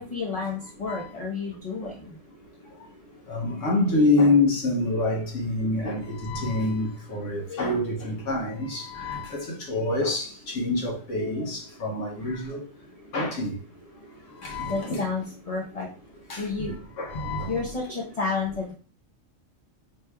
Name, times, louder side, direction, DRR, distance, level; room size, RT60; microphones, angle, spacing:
voice 1, 0.0-2.2 5.1-5.3 5.6-5.7 7.3-8.1 14.7-15.9 16.4-16.7 17.5-18.7, left 4 dB, 35° left, 0.8 m, -31 dB
voice 2, 3.3-12.6 13.1-13.5 14.4-15.1 16.3-16.4 17.0-17.6, left 2 dB, 70° left, 1.3 m, -26 dB
6.0 x 3.2 x 2.2 m
omnidirectional pair, 1.4 m